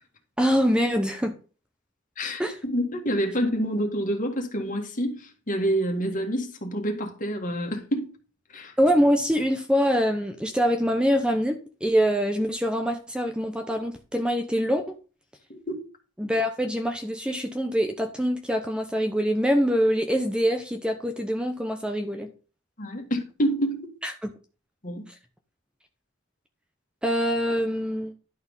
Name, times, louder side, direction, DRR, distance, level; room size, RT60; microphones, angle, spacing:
voice 1, 0.4-1.4 2.4-2.6 8.8-15.0 16.2-22.3 24.0-24.3 27.0-28.1, equal, 5° right, 0.8 m, -24 dB
voice 2, 2.2-8.1 8.5-8.7 15.5-15.9 22.8-23.9 24.8-25.1, equal, 45° left, 1.9 m, -28 dB
11.0 x 4.3 x 5.4 m
head